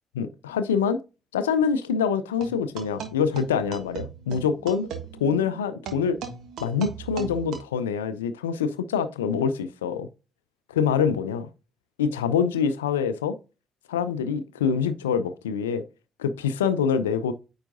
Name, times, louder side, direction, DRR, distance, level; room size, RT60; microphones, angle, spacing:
voice 1, 0.1-1.0 1.3-4.9 5.2-6.2 6.6-10.1 10.8-11.5 12.0-13.4 13.9-15.8 16.2-17.3, left 6 dB, 80° left, 0.5 m, -25 dB
sound 1, 2.4-7.6, right 7 dB, 60° right, 1.3 m, -38 dB
8.9 x 4.7 x 2.6 m
figure-of-eight pair, 45°, 0 cm